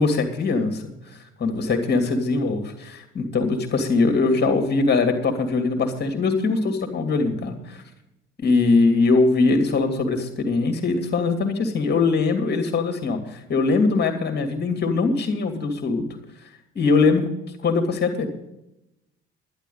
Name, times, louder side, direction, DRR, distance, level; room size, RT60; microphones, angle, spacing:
voice 1, 0.0-7.8 8.4-16.1 16.7-17.2 17.6-18.3, left 3 dB, 30° left, 6 dB, 2.3 m, -22 dB
11.5 x 10.5 x 5.4 m, 0.91 s
figure-of-eight pair, 55°, 32 cm